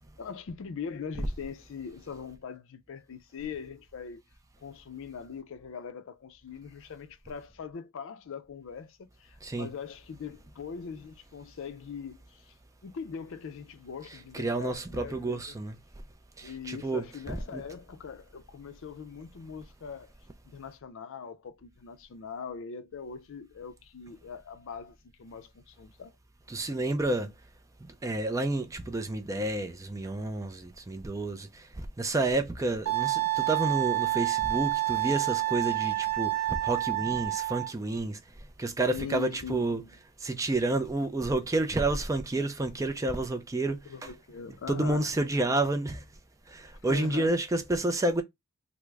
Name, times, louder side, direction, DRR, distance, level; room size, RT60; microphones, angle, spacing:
voice 1, 0.2-4.2 4.6-12.5 12.8-15.6 16.4-20.1 20.4-26.1 38.9-39.9 43.9-45.1 46.9-47.4, left 6 dB, 60° left, 0.4 m, -41 dB
voice 2, 9.4-9.7 14.1-15.8 16.4-17.6 26.5-27.3 27.8-38.2 38.6-39.8 40.2-44.1 44.7-46.0 46.5-48.2, right 2 dB, 15° right, 0.3 m, -30 dB
Wind instrument woodwind instrument, 32.9-37.7, right 17 dB, 90° right, 0.6 m, -28 dB
3.5 x 2.0 x 3.2 m
head